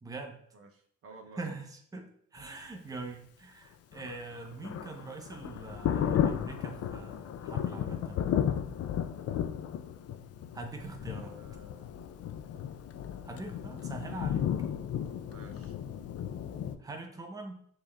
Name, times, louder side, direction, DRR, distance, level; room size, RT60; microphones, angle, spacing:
voice 1, 0.0-0.4 1.4-8.2 10.5-11.4 13.2-14.5 16.8-17.6, right 3 dB, 10° right, 3 dB, 0.7 m, -43 dB
voice 2, 0.5-1.4 11.2-12.0 15.3-15.8, right 1 dB, 50° right, 3 dB, 0.6 m, -52 dB
Thunder, 3.9-16.8, left 9 dB, 55° left, 0.4 m, -34 dB
6.7 x 3.1 x 2.3 m, 0.65 s
cardioid pair, 90°, 30 cm